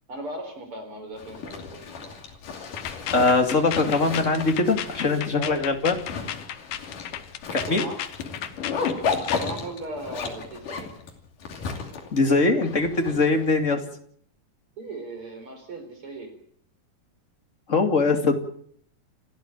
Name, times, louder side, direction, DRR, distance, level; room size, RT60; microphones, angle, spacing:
voice 1, 0.1-2.2 5.0-5.6 7.7-8.0 9.3-10.9 14.8-16.4, right 2 dB, 40° right, 7 dB, 4.7 m, -37 dB
Zipper (clothing), 1.2-13.7, left 5 dB, 65° left, 4.3 m, -34 dB
sound 1, 2.6-9.5, left 11 dB, 85° left, 2.9 m, -34 dB
voice 2, 3.1-5.9 7.5-7.9 12.1-13.8 17.7-18.4, left 3 dB, 25° left, 5 dB, 2.3 m, -22 dB
29.5 x 12.5 x 9.1 m, 0.65 s
omnidirectional pair, 4.0 m